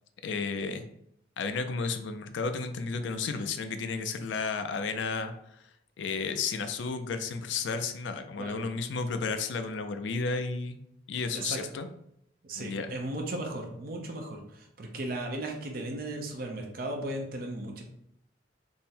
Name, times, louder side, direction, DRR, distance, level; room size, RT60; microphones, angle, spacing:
voice 1, 0.2-0.8 1.4-5.6 6.0-10.8 11.1-11.9 12.6-12.9, left 4 dB, 70° left, 9 dB, 0.4 m, -32 dB
voice 2, 12.4-17.8, right 1 dB, 50° right, 2 dB, 0.6 m, -36 dB
3.6 x 2.0 x 4.2 m, 0.76 s
head